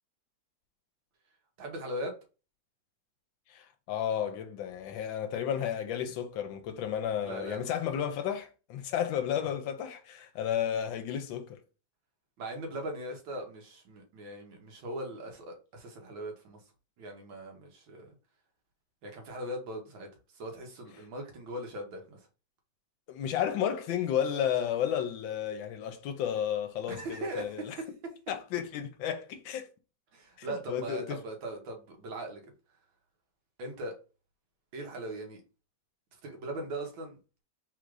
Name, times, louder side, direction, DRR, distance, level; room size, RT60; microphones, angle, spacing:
voice 1, 1.6-2.1 7.2-7.7 12.4-16.6 17.0-18.2 19.0-20.1 20.3-22.2 26.9-27.9 30.1-32.4 33.6-34.0 34.7-35.4 36.2-37.2, right 1 dB, 85° right, 1.9 m, -39 dB
voice 2, 3.5-11.6 23.1-27.8 28.3-29.7 30.4-31.2, left 9 dB, 85° left, 1.4 m, -32 dB
4.0 x 2.4 x 4.7 m
omnidirectional pair, 2.1 m